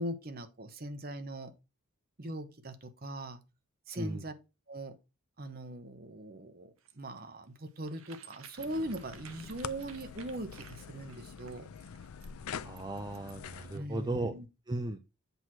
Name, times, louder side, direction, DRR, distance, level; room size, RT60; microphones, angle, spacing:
voice 1, 0.0-1.5 2.2-3.4 3.9-4.3 4.7-5.0 5.4-11.7 13.7-14.5, right 1 dB, 45° right, 0.9 m, -40 dB
sound 1, 6.8-13.6, right 8 dB, 70° right, 0.7 m, -54 dB
sound 2, 8.6-13.8, left 7 dB, 80° left, 0.4 m, -45 dB
voice 2, 12.6-14.3 14.7-15.0, right 1 dB, 20° right, 0.4 m, -36 dB
8.0 x 3.0 x 6.1 m
head